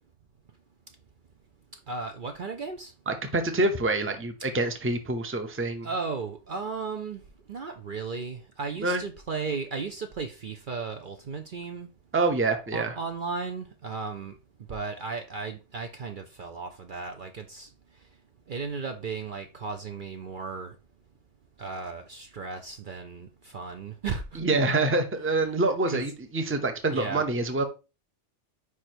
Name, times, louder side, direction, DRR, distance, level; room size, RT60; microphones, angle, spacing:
voice 1, 1.9-2.9 4.4-4.5 5.8-7.2 7.5-11.9 12.7-14.3 14.7-17.7 18.5-20.8 21.6-24.2 25.9-26.1 26.9-27.3, right 4 dB, 50° right, 0.7 m, -35 dB
voice 2, 3.1-5.9 8.8-9.0 12.1-12.9 24.4-27.6, right 2 dB, 15° right, 0.7 m, -26 dB
5.0 x 4.8 x 4.4 m
omnidirectional pair, 1.2 m